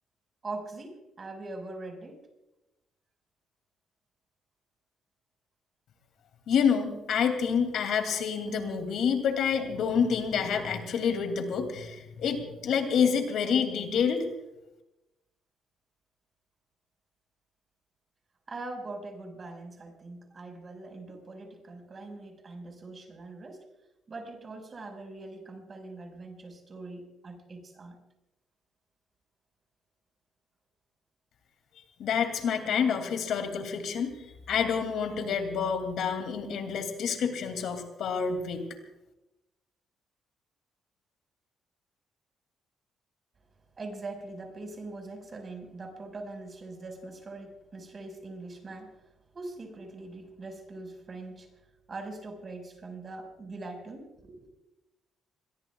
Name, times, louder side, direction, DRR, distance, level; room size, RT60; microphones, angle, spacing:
voice 1, 0.4-2.3 18.5-23.6 24.1-28.0 43.8-51.5 51.9-54.5, right 2 dB, 40° right, 4 dB, 5.1 m, -42 dB
voice 2, 6.5-14.3 32.0-34.1 34.5-38.7, left 6 dB, 75° left, 6 dB, 2.6 m, -28 dB
27.0 x 22.0 x 2.4 m, 0.96 s
cardioid pair, 90°, 0 cm